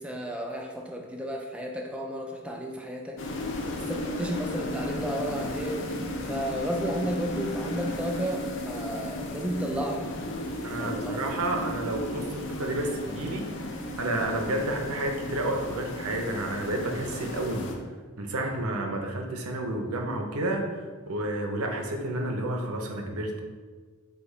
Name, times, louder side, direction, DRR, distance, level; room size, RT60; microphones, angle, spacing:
voice 1, 0.0-3.4 3.7-5.8 6.2-10.1 10.8-11.4, equal, 5° right, 1 dB, 0.3 m, -33 dB
sound 1, 3.2-17.7, left 1 dB, 55° left, 0.5 m, -35 dB
voice 2, 10.6-13.5 14.0-17.7 18.2-23.4, right 1 dB, 75° right, 2 dB, 0.6 m, -30 dB
5.1 x 2.3 x 3.8 m, 1.5 s
head